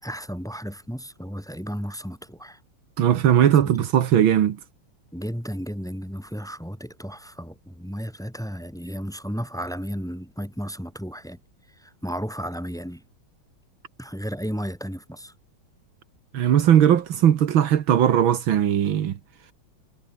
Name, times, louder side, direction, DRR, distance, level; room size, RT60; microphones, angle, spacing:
voice 1, 0.0-2.6 3.6-3.7 5.1-11.4 11.8-13.0 14.0-15.3, equal, ahead, 3.9 m, -33 dB
voice 2, 3.0-4.6 16.3-19.2, right 10 dB, 75° right, 2.0 m, -19 dB
omnidirectional pair, 2.2 m